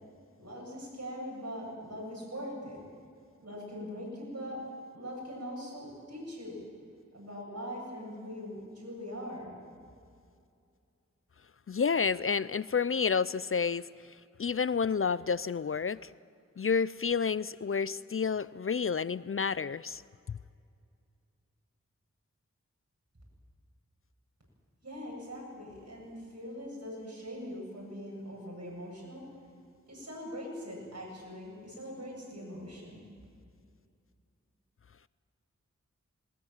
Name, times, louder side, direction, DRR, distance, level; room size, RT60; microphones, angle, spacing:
voice 1, 0.4-2.8 3.4-4.6 4.9-6.6 7.1-9.6 24.8-29.2 29.9-33.0, equal, 60° right, -2 dB, 8.0 m, -42 dB
voice 2, 11.7-13.9 14.4-16.1 16.6-20.0 20.3-20.4, left 6 dB, 50° left, 18 dB, 0.4 m, -30 dB
20.0 x 20.0 x 7.4 m, 2.4 s
wide cardioid pair, 55°, 29 cm